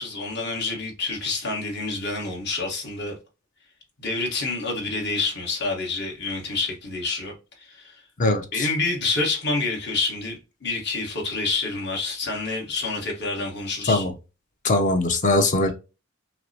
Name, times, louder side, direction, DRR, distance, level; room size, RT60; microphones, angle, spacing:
voice 1, 0.0-3.2 4.0-8.0 8.5-14.0, left 3 dB, 55° left, 1.4 m, -28 dB
voice 2, 8.2-8.7 13.9-14.1 14.6-15.7, left 2 dB, 40° left, 0.6 m, -21 dB
5.7 x 2.1 x 2.8 m
head